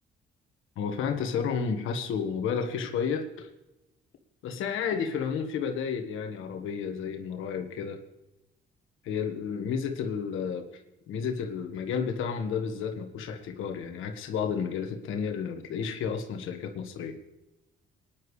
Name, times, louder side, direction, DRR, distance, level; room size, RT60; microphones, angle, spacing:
voice 1, 0.7-3.5 4.4-8.0 9.0-10.7 11.1-17.1, left 6 dB, 85° left, 5 dB, 1.5 m, -31 dB
19.5 x 10.5 x 3.2 m, 0.97 s
cardioid pair, 90°, 20 cm